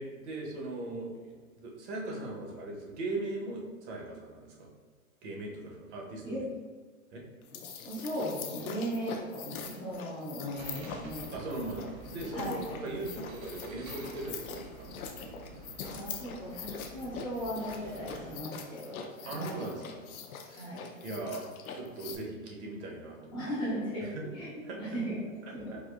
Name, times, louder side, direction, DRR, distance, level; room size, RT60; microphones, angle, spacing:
voice 1, 0.0-4.7 5.2-6.5 7.1-7.2 11.3-14.7 19.2-20.1 20.4-20.7 21.0-23.4 24.0-24.2 24.6-24.8 25.7-25.8, right 2 dB, 55° right, -1 dB, 0.9 m, -39 dB
sound 1, 7.4-22.2, left 6 dB, 85° left, 0.6 m, -43 dB
voice 2, 7.8-11.3 12.3-12.6 15.8-19.7 20.6-21.2 23.3-24.5 24.8-25.8, equal, 15° left, -11 dB, 0.3 m, -37 dB
Work in Progress- Train Station, 10.5-18.4, right 2 dB, 80° right, 0.7 m, -48 dB
4.2 x 2.5 x 2.4 m, 1.5 s
hypercardioid pair, 135°, 42 cm